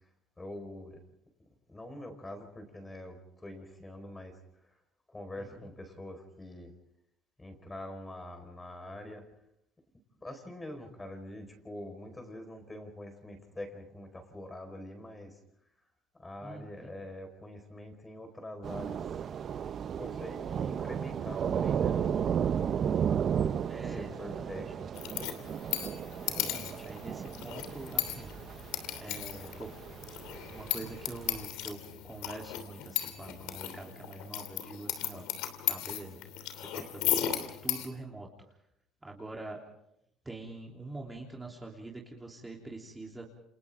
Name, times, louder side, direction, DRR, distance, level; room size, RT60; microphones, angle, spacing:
voice 1, 0.4-1.0 1.7-4.7 5.1-6.7 7.4-9.2 10.2-15.4 16.2-19.1 19.9-22.4 23.4-25.3 30.2-30.5, left 1 dB, 15° left, 6 dB, 4.8 m, -45 dB
voice 2, 5.4-5.7 16.4-16.9 23.7-24.6 26.2-28.3 28.9-29.7 30.5-31.8 32.0-35.2 35.7-36.2 36.5-37.1 37.6-38.3 39.0-39.6 40.2-43.3, right 2 dB, 15° right, -2 dB, 3.4 m, -44 dB
Thunder / Rain, 18.6-31.4, right 8 dB, 45° right, 0.7 m, -34 dB
sound 1, 24.9-37.8, left 12 dB, 85° left, 3.0 m, -36 dB
29.5 x 28.0 x 3.7 m, 0.78 s
cardioid pair, 120°, 0 cm